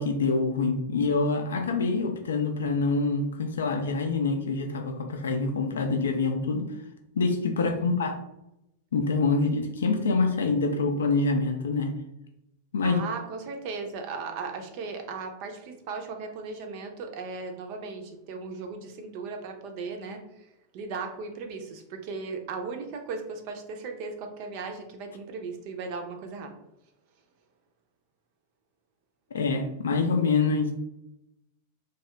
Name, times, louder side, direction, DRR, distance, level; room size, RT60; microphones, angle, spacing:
voice 1, 0.0-6.7 7.2-8.2 8.9-11.9 12.7-13.0 29.3-30.7, left 4 dB, 65° left, 4 dB, 0.4 m, -26 dB
voice 2, 7.6-8.0 12.8-20.5 20.7-26.6, right 4 dB, 45° right, 4 dB, 0.5 m, -37 dB
2.7 x 2.3 x 3.2 m, 0.87 s
figure-of-eight pair, 90°, 0 cm